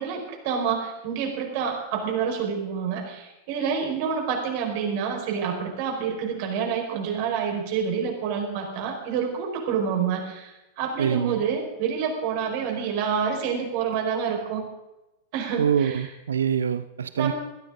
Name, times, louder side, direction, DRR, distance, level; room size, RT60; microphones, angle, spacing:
voice 1, 0.0-14.6 15.3-16.1 17.1-17.3, right 7 dB, 45° right, 1 dB, 5.0 m, -28 dB
voice 2, 11.0-11.4 15.6-17.3, right 8 dB, 70° right, 14 dB, 0.8 m, -24 dB
21.5 x 15.5 x 3.9 m, 0.96 s
figure-of-eight pair, 90°, 0 cm